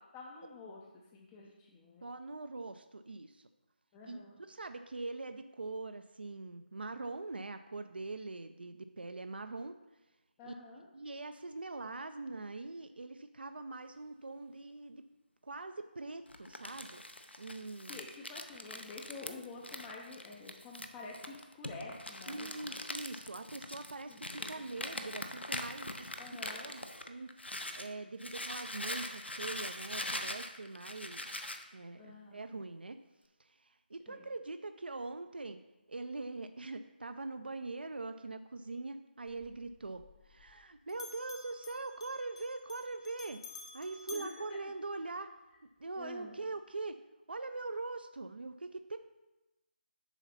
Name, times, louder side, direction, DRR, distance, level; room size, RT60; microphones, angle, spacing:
voice 1, 0.1-2.1 3.9-4.4 10.4-10.9 17.9-22.8 24.1-24.9 26.2-26.7 32.0-32.5 34.1-34.3 44.1-44.6 46.0-46.4, left 3 dB, 10° left, -2 dB, 0.4 m, -49 dB
voice 2, 2.0-3.5 4.1-9.7 10.4-10.5 10.9-15.0 15.4-17.0 17.4-18.1 22.3-26.2 26.6-27.3 27.7-33.0 33.4-35.6 35.9-43.4 43.7-45.3 45.8-47.0 47.3-49.0, right 3 dB, 65° right, 9 dB, 0.5 m, -43 dB
Crumpling crinkling, 16.3-27.9 28.2-31.6, left 1 dB, 85° left, 0.8 m, -42 dB
Bell, 39.3-40.6 40.9-45.4, left 3 dB, 30° left, 0.8 m, -52 dB
7.1 x 4.0 x 5.6 m, 1.0 s
figure-of-eight pair, 155°, 6 cm